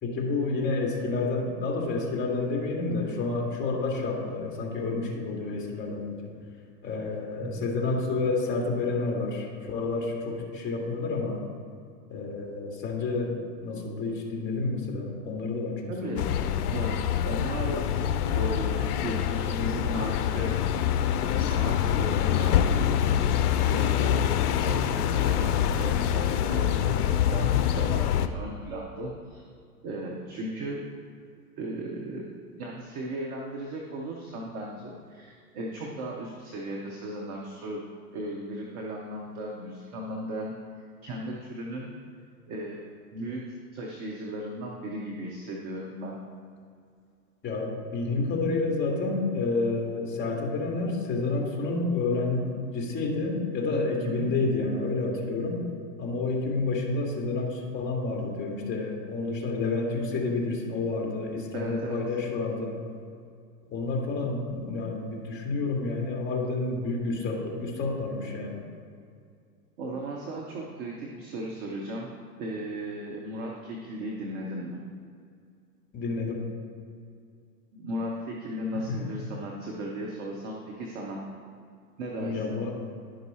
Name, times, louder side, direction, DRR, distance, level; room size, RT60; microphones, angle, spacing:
voice 1, 0.0-6.2 6.8-11.4 12.1-16.3 47.4-55.6 56.0-62.8 63.7-68.6 75.9-76.4 78.9-79.1 82.2-82.7, left 3 dB, 25° left, 0 dB, 2.0 m, -29 dB
voice 2, 15.9-16.3 16.7-20.6 21.4-22.6 23.6-29.5 29.8-30.8 31.6-32.3 32.6-37.8 38.1-40.6 41.0-41.9 42.5-42.8 43.1-43.5 43.7-46.2 54.0-54.3 61.5-62.0 69.8-72.1 72.4-74.8 77.7-81.2 82.0-82.5, right 1 dB, 15° right, -2 dB, 0.3 m, -36 dB
sound 1, 16.2-28.3, left 9 dB, 65° left, 0.7 m, -25 dB
11.0 x 5.4 x 4.2 m, 2.3 s
hypercardioid pair, 120°, 49 cm